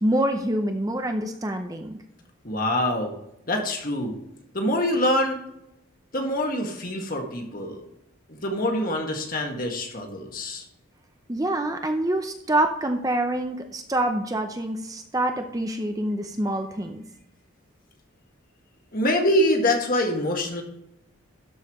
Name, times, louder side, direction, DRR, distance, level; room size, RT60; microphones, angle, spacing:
voice 1, 0.0-2.0 11.3-17.0, right 1 dB, 15° right, 5 dB, 0.6 m, -26 dB
voice 2, 2.4-3.1 3.5-4.1 4.5-5.4 6.1-7.8 8.4-10.6 18.9-20.6, left 1 dB, 40° left, 2 dB, 1.7 m, -25 dB
12.5 x 5.4 x 3.1 m, 0.79 s
head